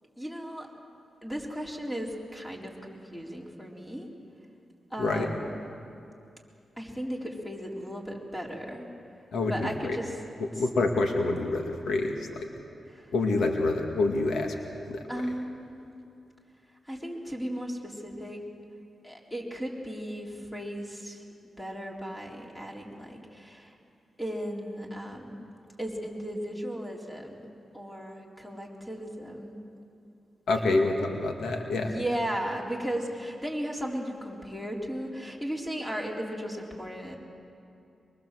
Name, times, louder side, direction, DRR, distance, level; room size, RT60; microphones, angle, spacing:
voice 1, 0.2-0.7 1.2-4.1 4.9-5.6 6.8-8.9 9.5-10.2 10.5-10.6 12.9-13.1 15.1-15.9 16.8-18.4 19.0-21.2 21.6-23.8 24.2-25.4 25.8-27.5 27.7-29.6 30.5-30.6 31.8-37.2, equal, 10° left, -1 dB, 4.3 m, -36 dB
voice 2, 10.6-12.5 13.1-14.5 14.9-15.0 30.5-31.9, left 3 dB, 85° left, 3 dB, 2.0 m, -27 dB
24.0 x 23.5 x 7.8 m, 2.6 s
cardioid pair, 75°, 0 cm